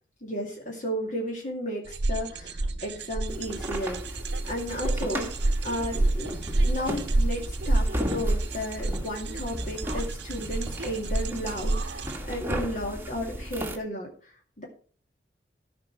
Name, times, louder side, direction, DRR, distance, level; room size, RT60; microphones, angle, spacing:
voice 1, 0.2-6.3 6.6-14.6, equal, 45° left, -2 dB, 2.5 m, -34 dB
sound 1, 1.9-12.2, right 2 dB, 70° right, 0.8 m, -29 dB
sound 2, 3.3-13.8, equal, 15° right, 1.4 m, -35 dB
14.0 x 5.4 x 6.1 m, 0.42 s
head